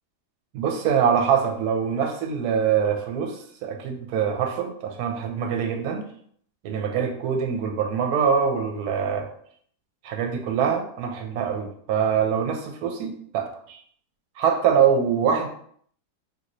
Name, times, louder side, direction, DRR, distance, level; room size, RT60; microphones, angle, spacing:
voice 1, 0.5-6.1 6.6-9.3 10.0-13.8 14.4-15.5, right 7 dB, 75° right, 3 dB, 1.1 m, -24 dB
3.2 x 2.9 x 2.6 m, 0.62 s
omnidirectional pair, 1.7 m